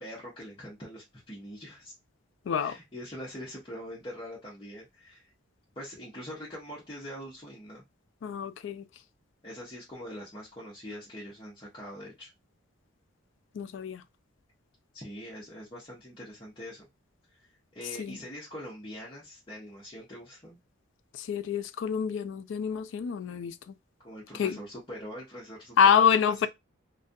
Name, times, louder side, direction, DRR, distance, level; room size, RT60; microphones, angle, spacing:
voice 1, 0.0-1.9 2.6-5.3 5.8-7.8 9.4-12.3 14.9-16.8 17.7-20.6 24.0-26.1, equal, 25° left, 0.8 m, -43 dB
voice 2, 2.5-2.8 8.2-8.8 13.5-14.0 18.0-18.2 21.1-23.7 24.3-24.6 25.8-26.5, left 7 dB, 70° left, 0.3 m, -26 dB
2.4 x 2.2 x 2.6 m
head